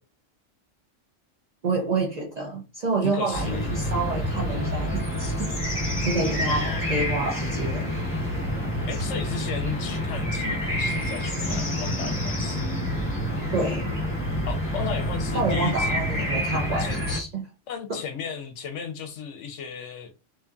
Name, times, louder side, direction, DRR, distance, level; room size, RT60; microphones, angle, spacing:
voice 1, 1.6-5.5 5.9-7.9 13.5-13.9 15.3-17.5 17.9-18.0, right 3 dB, 55° right, 0.4 m, -28 dB
voice 2, 3.0-3.9 6.5-6.8 8.9-12.6 14.5-16.2 16.8-17.0 17.7-20.1, left 7 dB, 75° left, 0.9 m, -35 dB
sound 1, 3.3-17.2, equal, 10° left, 0.8 m, -28 dB
2.7 x 2.5 x 2.3 m
omnidirectional pair, 1.3 m